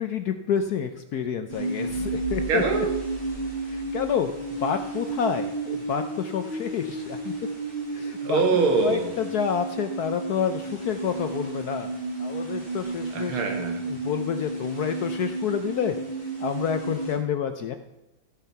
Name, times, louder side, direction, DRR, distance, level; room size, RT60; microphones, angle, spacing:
voice 1, 0.0-2.6 3.7-4.3 4.6-7.3 7.9-8.4 8.8-11.9 12.2-13.4 13.9-16.0 16.4-17.8, left 8 dB, 65° left, 8 dB, 1.0 m, -28 dB
sound 1, 1.5-17.2, right 2 dB, 25° right, 3.3 m, -32 dB
sound 2, 1.8-5.2, right 4 dB, 55° right, 3.1 m, -41 dB
voice 2, 2.5-2.9 8.2-9.1 13.1-13.8, right 4 dB, 85° right, 3 dB, 2.4 m, -23 dB
14.0 x 7.2 x 5.6 m, 0.95 s
omnidirectional pair, 2.3 m